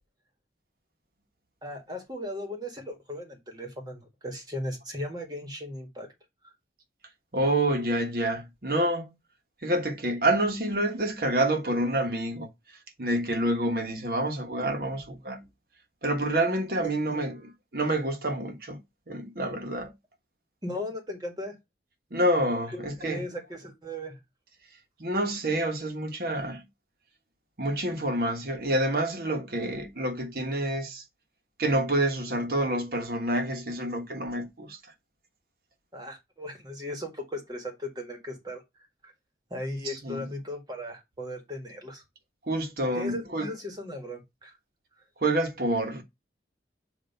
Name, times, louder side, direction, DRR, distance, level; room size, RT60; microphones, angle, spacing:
voice 1, 1.6-6.1 6.4-6.5 20.6-21.5 22.7-24.2 35.9-39.1 39.5-42.0 42.9-44.6, left 1 dB, 20° right, 1.7 m, -37 dB
voice 2, 7.3-9.1 9.6-12.5 13.0-15.4 16.0-18.8 19.1-19.9 22.1-23.2 25.0-26.6 27.6-31.0 31.6-34.8 40.0-40.2 42.5-43.5 45.2-46.0, right 1 dB, 55° right, 1.3 m, -28 dB
7.8 x 2.9 x 5.5 m
head